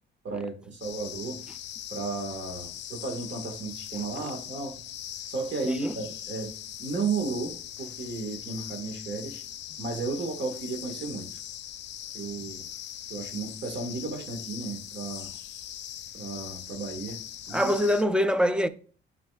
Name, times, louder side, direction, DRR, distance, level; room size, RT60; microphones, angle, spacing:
voice 1, 0.2-1.4 1.9-4.8 5.2-6.5 6.8-9.4 9.8-11.3 12.1-12.7 13.1-15.3 16.1-17.2 17.5-17.7, right 4 dB, 65° right, 1.6 m, -34 dB
sound 1, 0.8-18.0, left 11 dB, 65° left, 0.5 m, -41 dB
voice 2, 5.6-5.9 17.5-18.7, equal, 5° right, 0.5 m, -24 dB
9.2 x 4.9 x 2.3 m
cardioid pair, 90°, 20 cm